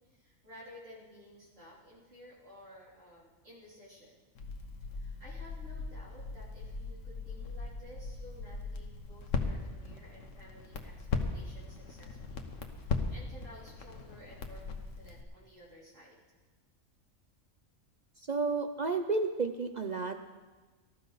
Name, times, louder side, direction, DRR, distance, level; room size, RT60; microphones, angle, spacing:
voice 1, 0.0-4.2 4.9-11.1 11.3-12.4 12.7-16.2, equal, 65° right, -8 dB, 3.8 m, -54 dB
Crackle, 4.4-15.2, left 4 dB, 70° left, 1.4 m, -38 dB
voice 2, 18.3-20.2, right 4 dB, 45° right, 6 dB, 0.6 m, -31 dB
18.5 x 13.5 x 4.1 m, 1.3 s
omnidirectional pair, 1.4 m